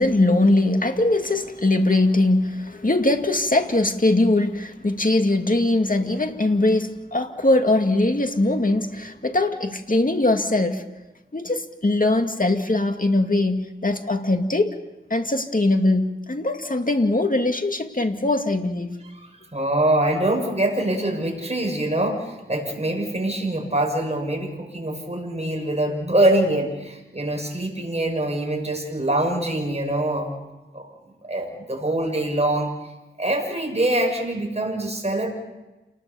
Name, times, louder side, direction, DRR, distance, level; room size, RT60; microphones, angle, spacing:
voice 1, 0.0-10.8 11.3-14.8 15.1-18.9, left 2 dB, 40° left, 5 dB, 2.2 m, -21 dB
voice 2, 19.5-30.4 30.7-30.9 31.2-32.7 33.2-35.3, right 1 dB, 30° right, 2 dB, 6.6 m, -24 dB
28.5 x 20.0 x 7.1 m, 1.1 s
wide cardioid pair, 45°, 21 cm